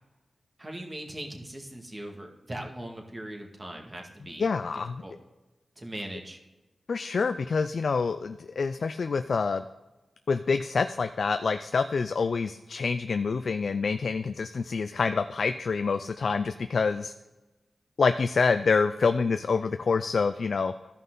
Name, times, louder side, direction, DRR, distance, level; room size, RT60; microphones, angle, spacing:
voice 1, 0.6-4.4 5.0-5.1 5.8-6.4, right 1 dB, 30° right, 1 dB, 2.0 m, -40 dB
voice 2, 4.4-5.0 6.9-9.6 10.3-17.1 18.0-20.7, left 4 dB, 70° left, 9 dB, 0.4 m, -27 dB
13.0 x 5.5 x 3.9 m, 1.1 s
cardioid pair, 45°, 0 cm